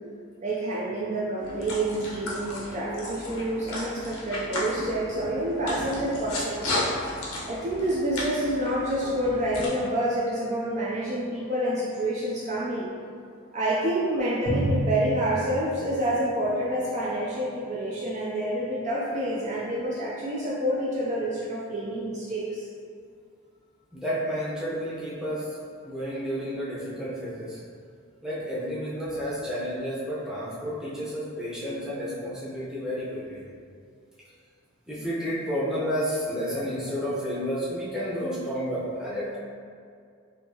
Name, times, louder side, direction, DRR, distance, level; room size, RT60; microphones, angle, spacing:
voice 1, 0.4-6.7 7.5-12.9 13.5-22.7, right 1 dB, 35° right, -6 dB, 0.4 m, -28 dB
sound 1, 1.4-9.7, left 1 dB, 80° left, 0.9 m, -34 dB
Drum, 14.5-16.8, equal, 50° right, 1.1 m, -30 dB
voice 2, 23.9-25.6 25.8-27.6 28.2-33.4 34.9-39.4, equal, 5° right, -9 dB, 0.7 m, -31 dB
4.2 x 2.7 x 2.8 m, 2.2 s
head